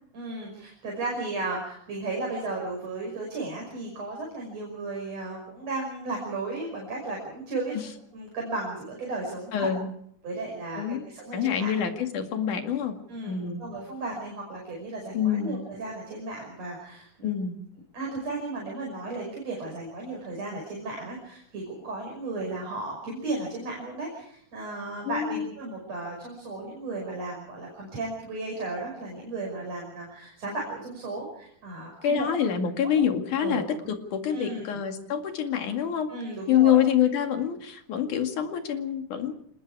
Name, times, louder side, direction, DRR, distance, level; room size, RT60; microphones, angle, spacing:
voice 1, 0.1-7.8 8.1-9.7 10.2-11.7 13.1-17.3 17.9-32.3 33.4-34.0 34.3-34.7 36.1-36.8, right 2 dB, 50° right, -1 dB, 6.8 m, -35 dB
voice 2, 9.5-9.9 10.8-11.0 11.3-13.0 13.3-13.6 15.1-15.6 17.2-17.6 25.1-25.5 32.0-36.1 36.5-39.4, left 9 dB, 65° left, 5 dB, 3.6 m, -26 dB
26.5 x 21.0 x 4.9 m, 0.69 s
omnidirectional pair, 3.8 m